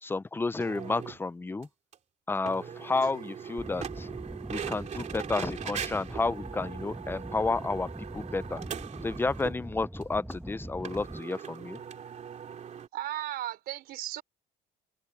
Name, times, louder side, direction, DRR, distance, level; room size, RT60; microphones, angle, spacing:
voice 1, 0.0-1.7 2.3-4.1 4.5-8.6 9.0-11.8, left 3 dB, 10° left, 0.6 m, -31 dB
sound 1, 0.6-1.2 1.6-1.7 1.9-2.0 2.4-9.6 10.0-10.1 10.3-10.4 10.8-12.9, right 8 dB, 45° right, 2.9 m, -40 dB
sound 2, 3.6-11.2, right 1 dB, 5° right, 1.3 m, -42 dB
voice 2, 12.9-14.2, right 13 dB, 65° right, 3.6 m, -35 dB
open air
cardioid pair, 105°, 17 cm